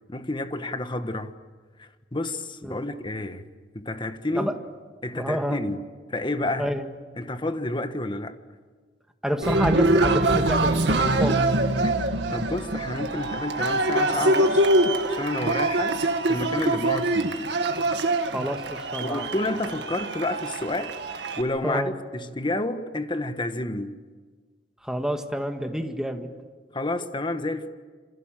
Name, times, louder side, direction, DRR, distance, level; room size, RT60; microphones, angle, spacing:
voice 1, 0.1-1.4 1.8-3.4 3.7-4.5 5.0-6.7 7.2-8.4 11.1-11.2 11.8-12.0 12.3-14.7 15.1-17.4 19.0-20.9 21.4-24.0 26.7-27.7, left 2 dB, 30° left, 1.3 m, -30 dB
voice 2, 5.2-5.6 6.6-6.9 9.2-11.5 18.3-19.3 21.6-21.9 24.8-26.3, equal, 5° right, 1.8 m, -28 dB
Cheering, 9.4-21.4, right 2 dB, 75° right, 1.8 m, -24 dB
27.5 x 27.0 x 7.6 m
head